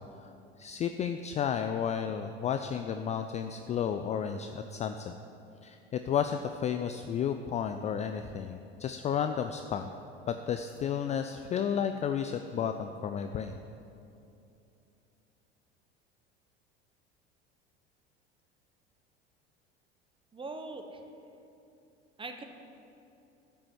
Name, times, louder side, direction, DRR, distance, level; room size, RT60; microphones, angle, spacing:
voice 1, 0.6-5.1 5.6-9.9 10.3-13.6, left 8 dB, 20° left, 7 dB, 0.4 m, -32 dB
voice 2, 20.3-21.0 22.2-22.4, right 3 dB, 15° right, 5 dB, 1.1 m, -41 dB
11.0 x 5.5 x 7.5 m, 2.8 s
figure-of-eight pair, 70°, 33 cm